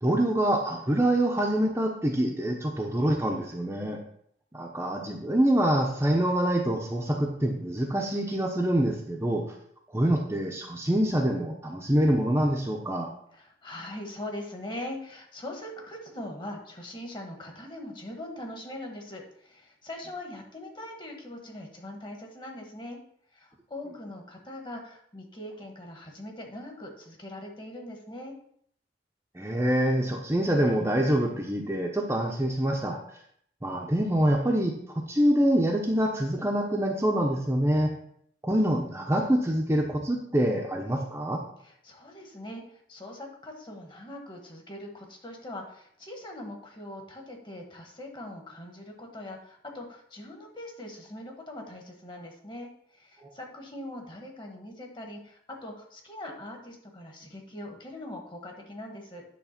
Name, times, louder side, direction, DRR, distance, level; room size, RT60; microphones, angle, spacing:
voice 1, 0.0-4.0 4.5-9.4 9.9-13.1 29.3-33.0 33.6-34.7 35.1-37.9 38.4-41.4, right 1 dB, 15° right, 0 dB, 0.8 m, -25 dB
voice 2, 13.3-23.0 23.3-28.3 41.6-59.2, left 1 dB, 25° left, 1 dB, 1.4 m, -41 dB
9.6 x 3.2 x 5.9 m, 0.66 s
head